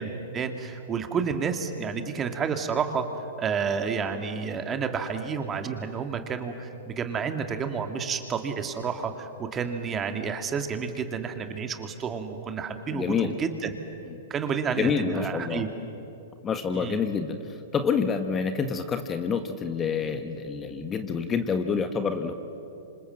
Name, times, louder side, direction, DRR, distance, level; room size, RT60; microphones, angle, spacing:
voice 1, 0.0-3.1 3.4-13.8 14.3-15.7 16.7-17.0, right 6 dB, 25° right, 6 dB, 2.2 m, -30 dB
voice 2, 12.9-13.4 14.1-14.2 14.8-15.7 16.4-17.4 17.7-22.3, left 6 dB, 25° left, 8 dB, 1.5 m, -27 dB
26.5 x 26.5 x 7.7 m, 2.8 s
hypercardioid pair, 115°, 0 cm